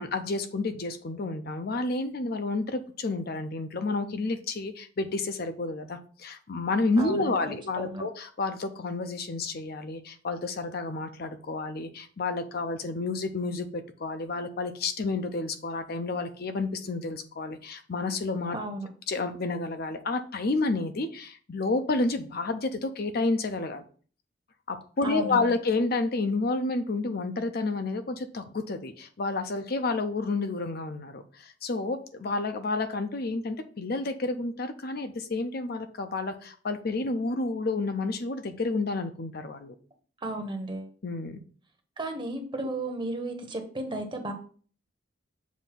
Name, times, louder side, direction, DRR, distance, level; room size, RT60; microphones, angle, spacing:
voice 1, 0.0-18.6 19.1-23.8 24.7-39.7 41.0-41.4, left 3 dB, 50° left, 8 dB, 0.6 m, -30 dB
voice 2, 7.0-7.3 7.8-8.0 18.5-18.9 25.0-25.5 40.2-40.9 42.0-44.3, right 2 dB, 25° right, 4 dB, 1.0 m, -34 dB
7.2 x 2.7 x 5.7 m, 0.42 s
head